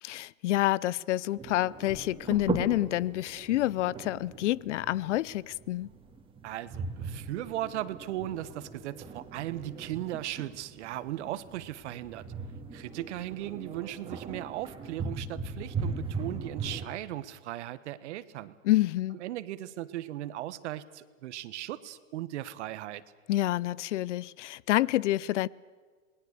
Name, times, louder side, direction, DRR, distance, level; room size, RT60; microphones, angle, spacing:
voice 1, 0.0-5.9 18.6-19.2 23.3-25.5, left 15 dB, 65° left, 0.6 m, -28 dB
sound 1, 1.4-16.9, right 4 dB, 15° right, 2.3 m, -39 dB
voice 2, 6.4-12.2 12.7-18.5 19.2-23.0, right 14 dB, 60° right, 1.3 m, -37 dB
27.5 x 20.5 x 6.7 m
hypercardioid pair, 135°, 39 cm